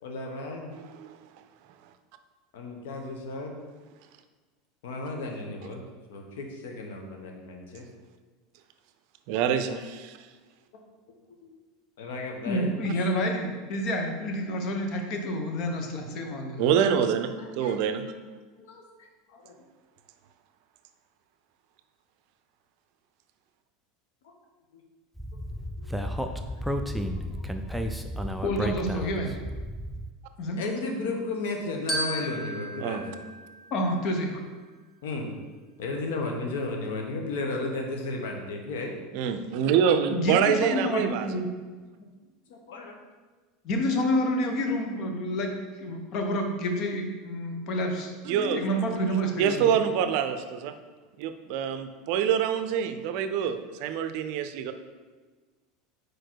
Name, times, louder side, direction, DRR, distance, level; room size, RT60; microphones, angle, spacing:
voice 1, 0.0-0.7 2.5-3.6 4.8-5.8 6.1-7.8 11.4-11.5 12.0-13.1 17.4-17.7 18.6-18.8 19.3-19.6 24.2-24.3 24.7-24.8 25.8-26.1 26.5-27.2 27.7-27.9 30.5-33.2 35.0-35.3 35.8-38.9 42.5-43.0, left 2 dB, 85° left, 2 dB, 1.0 m, -34 dB
voice 2, 0.7-1.2 9.3-10.2 16.6-18.1 32.8-33.0 39.1-41.3 48.2-48.6 49.4-50.7 51.2-54.7, right 8 dB, 60° right, 9 dB, 0.5 m, -26 dB
voice 3, 12.4-16.7 28.4-29.3 30.4-30.7 33.7-34.4 40.1-41.5 43.6-45.5 45.8-49.9, equal, 45° left, 3 dB, 0.9 m, -29 dB
Speech, 25.2-30.1, equal, ahead, 0.3 m, -32 dB
Glockenspiel, 31.9-34.4, right 1 dB, 30° left, 1.2 m, -35 dB
4.7 x 4.5 x 4.6 m, 1.4 s
supercardioid pair, 135°, 0 cm